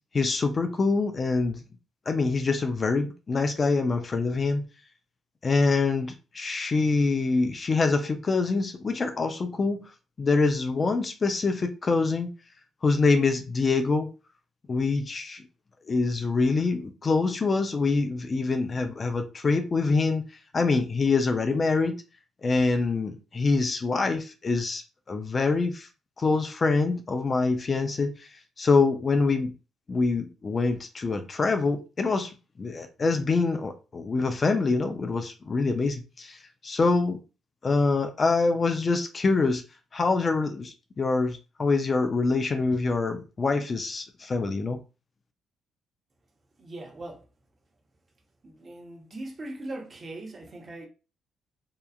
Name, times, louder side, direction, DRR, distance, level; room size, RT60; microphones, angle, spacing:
voice 1, 0.1-1.6 2.1-4.6 5.4-9.8 10.2-12.3 12.8-14.1 14.7-15.4 15.9-20.2 20.5-21.9 22.4-24.8 25.1-25.9 26.2-28.3 28.6-29.6 29.9-37.2 37.6-39.6 39.9-44.8, left 3 dB, 35° left, 0.4 m, -25 dB
voice 2, 46.6-47.3 48.4-50.9, right 2 dB, 35° right, 0.8 m, -40 dB
2.7 x 2.3 x 2.3 m
cardioid pair, 90°, 0 cm